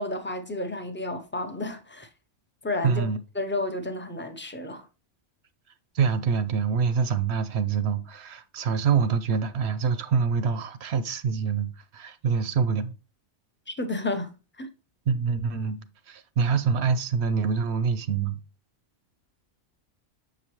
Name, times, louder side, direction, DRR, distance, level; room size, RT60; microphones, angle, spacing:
voice 1, 0.0-2.1 2.6-3.1 3.4-4.9 13.7-14.3 14.6-14.7, left 2 dB, 20° left, 0.3 m, -31 dB
voice 2, 2.8-3.2 5.9-12.9 15.1-15.8 16.1-18.4, right 6 dB, 70° right, 0.8 m, -25 dB
6.8 x 4.9 x 3.0 m
omnidirectional pair, 1.3 m